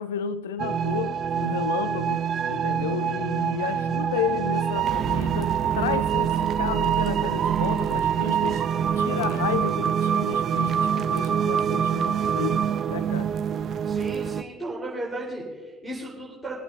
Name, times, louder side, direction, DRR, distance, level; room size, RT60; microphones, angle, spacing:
voice 1, 0.0-8.7 8.9-13.3, left 9 dB, 75° left, 0.4 m, -32 dB
sound 1, 0.6-14.4, right 8 dB, 45° right, 0.4 m, -25 dB
voice 2, 13.8-16.6, right 1 dB, 15° right, 3.9 m, -35 dB
24.5 x 8.5 x 2.7 m
figure-of-eight pair, 55°, 0 cm